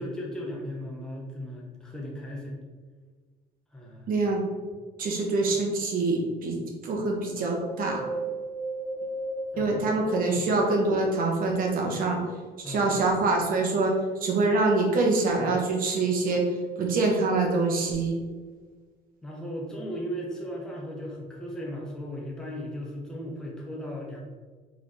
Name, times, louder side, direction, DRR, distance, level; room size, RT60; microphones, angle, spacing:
voice 1, 0.0-2.6 3.7-4.2 9.0-9.1 9.5-9.9 10.3-10.5 12.6-12.9 19.2-24.2, equal, 5° left, -3 dB, 0.9 m, -37 dB
voice 2, 4.1-4.4 5.0-6.6 6.8-8.1 9.6-12.2 12.6-13.9 14.2-16.4 16.8-18.1, right 3 dB, 55° right, 0 dB, 1.2 m, -25 dB
Wind, 7.4-10.9 11.5-12.7 13.3-13.4, right 2 dB, 40° left, 0.8 m, -36 dB
3.9 x 3.7 x 3.3 m, 1.5 s
cardioid pair, 110°, 17 cm